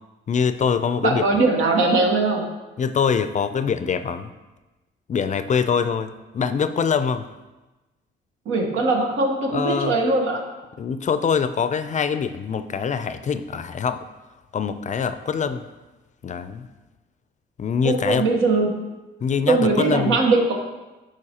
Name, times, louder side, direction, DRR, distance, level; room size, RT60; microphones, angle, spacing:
voice 1, 0.3-1.2 2.8-4.3 5.1-7.3 9.5-10.0 10.8-14.0 14.5-15.7 16.2-16.7 17.6-18.3 19.2-20.2, left 6 dB, 40° left, 11 dB, 0.4 m, -24 dB
voice 2, 1.0-2.5 8.5-10.4 17.8-18.8 19.5-20.5, right 3 dB, 85° right, 2 dB, 1.2 m, -20 dB
11.0 x 4.6 x 2.9 m, 1.1 s
cardioid pair, 90°, 20 cm